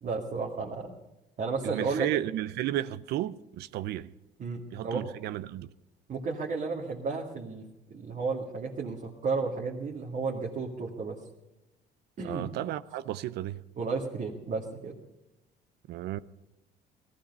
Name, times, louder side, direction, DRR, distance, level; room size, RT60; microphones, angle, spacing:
voice 1, 0.0-1.0 1.4-2.1 4.4-5.1 6.1-7.6 7.9-11.2 12.2-12.5 13.8-14.9, right 4 dB, 50° right, 2.1 m, -33 dB
voice 2, 1.6-4.1 4.7-5.7 12.2-13.6 15.9-16.2, right 13 dB, 75° right, 0.6 m, -33 dB
18.0 x 14.0 x 5.4 m
cardioid pair, 110°, 17 cm